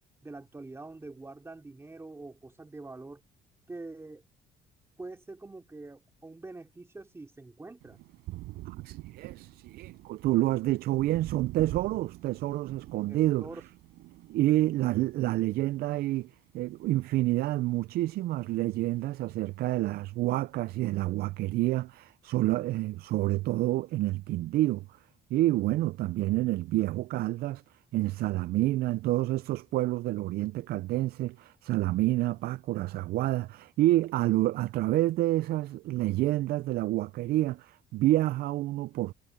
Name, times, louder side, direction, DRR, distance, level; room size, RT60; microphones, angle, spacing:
voice 1, 0.2-3.2 3.7-4.2 5.0-8.0 13.1-13.6, right 2 dB, 15° right, 2.6 m, -45 dB
Thunder, 7.8-17.6 17.9-19.0, right 18 dB, 90° right, 5.4 m, -46 dB
voice 2, 8.7-13.5 14.3-16.3 16.5-24.9 25.3-27.6 27.9-39.1, right 16 dB, 65° right, 0.4 m, -28 dB
cardioid pair, 110°, 17 cm